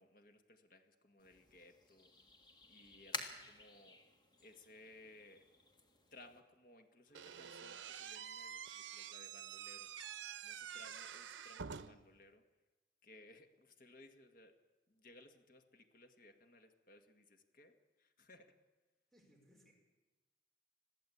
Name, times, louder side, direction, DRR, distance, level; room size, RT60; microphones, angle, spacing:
voice 1, 0.0-2.1 2.7-4.0 4.4-5.5 6.1-9.9 10.4-12.5 13.0-14.6 14.9-18.6, left 2 dB, 50° left, 6 dB, 1.9 m, -62 dB
sound 1, 1.2-6.4, left 3 dB, 25° left, 1.9 m, -51 dB
Slam / Squeak, 7.1-12.1, right 8 dB, 85° right, 0.8 m, -48 dB
voice 2, 19.1-19.7, equal, ahead, 0 dB, 5.1 m, -67 dB
21.5 x 14.5 x 8.6 m, 1.1 s
head